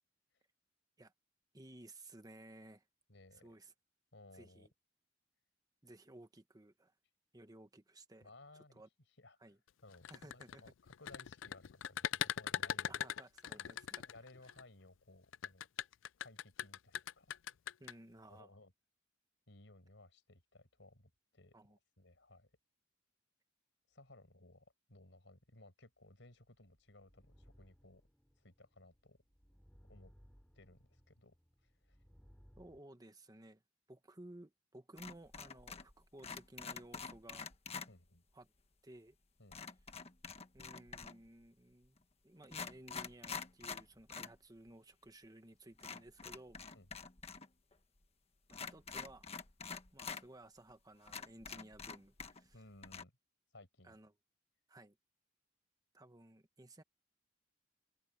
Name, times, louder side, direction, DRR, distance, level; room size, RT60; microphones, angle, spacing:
voice 1, 1.5-2.8 3.3-3.7 4.3-4.7 5.8-6.9 7.3-8.3 8.7-8.9 9.4-9.6 10.1-10.7 12.6-14.1 17.8-18.5 21.5-21.8 32.6-33.6 33.9-37.5 38.3-38.5 38.8-39.1 40.5-46.6 48.5-49.3 49.9-52.5 53.8-54.1 54.7-54.9 55.9-56.8, right 1 dB, 20° right, 1.3 m, -57 dB
voice 2, 3.1-3.5 4.1-4.7 8.2-8.8 9.2-9.5 9.8-13.0 13.5-15.7 16.2-17.6 18.3-18.7 19.5-22.5 23.9-28.0 28.4-29.2 29.9-30.1 30.5-31.3 31.8-32.0 37.9-38.2 39.4-39.6 46.7-47.1 52.5-53.1 53.5-54.0, left 2 dB, 70° left, 6.0 m, -60 dB
sound 1, 9.9-14.6 15.3-17.9, left 10 dB, 85° left, 0.4 m, -40 dB
sound 2, 26.3-32.8, equal, 5° left, 6.1 m, -65 dB
sound 3, 35.0-35.9 36.2-37.9 39.5-41.3 42.0-42.1 42.4-44.4 44.7-44.8 45.8-47.5 47.7-47.8 48.5-50.2 50.7-50.8 51.1-52.6 52.8-53.0, left 5 dB, 35° left, 1.5 m, -47 dB
head